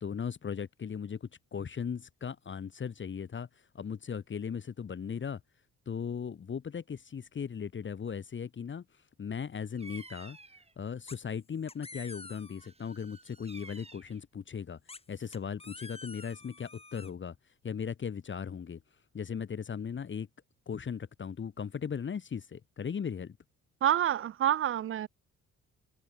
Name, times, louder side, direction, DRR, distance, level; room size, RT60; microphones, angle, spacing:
voice 1, 0.0-5.4 5.8-10.4 10.8-18.8 19.1-20.3 20.6-23.4, left 7 dB, 40° left, 1.6 m, -38 dB
Bird vocalization bird call bird song, 9.7-10.7 12.6-14.2, right 3 dB, 20° right, 4.8 m, -52 dB
sound 1, 11.1-11.4 11.7-12.7 14.9-17.1, left 3 dB, 20° left, 5.6 m, -48 dB
voice 2, 23.8-25.1, right 11 dB, 45° right, 0.5 m, -27 dB
cardioid pair, 90°, 30 cm